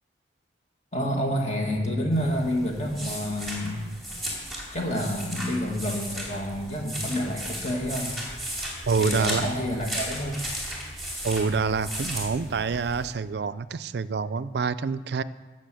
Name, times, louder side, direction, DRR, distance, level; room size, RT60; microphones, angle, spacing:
voice 1, 0.9-3.8 4.7-8.1 9.0-10.4 11.1-11.3, equal, 35° left, 0 dB, 2.0 m, -28 dB
sound 1, 2.1-13.1, equal, ahead, 2.5 m, -35 dB
voice 2, 8.9-9.5 11.2-15.2, right 4 dB, 60° right, 16 dB, 0.4 m, -27 dB
13.5 x 6.2 x 7.6 m, 1.3 s
head